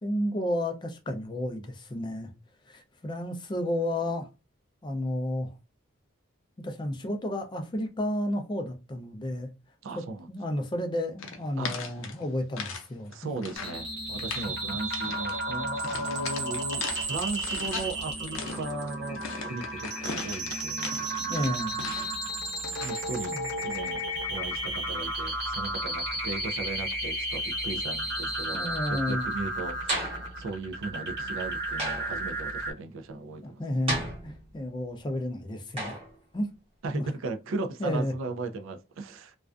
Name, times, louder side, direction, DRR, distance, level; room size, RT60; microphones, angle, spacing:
voice 1, 0.0-2.3 2.7-4.3 4.8-5.5 6.6-9.5 10.0-13.3 21.3-21.8 23.3-23.5 28.5-29.4 33.4-36.0 36.3-36.5 36.9-37.1 37.8-38.1, left 1 dB, 20° left, 0.3 m, -32 dB
voice 2, 9.8-10.3 11.6-11.7 13.1-21.0 22.7-23.3 23.6-30.1 30.4-33.8 36.8-39.4, right 3 dB, 70° right, 0.4 m, -37 dB
sound 1, 11.2-12.8 13.1-13.8 14.1-14.5 14.9-15.4 15.8-18.0 18.3-22.3 22.6-23.1, left 5 dB, 75° left, 0.5 m, -38 dB
sound 2, 13.5-32.7, right 1 dB, 55° right, 0.9 m, -33 dB
sound 3, 29.9-30.3 31.8-32.2 33.9-34.6 35.8-36.1, right 1 dB, 30° right, 1.0 m, -33 dB
2.4 x 2.2 x 2.4 m
head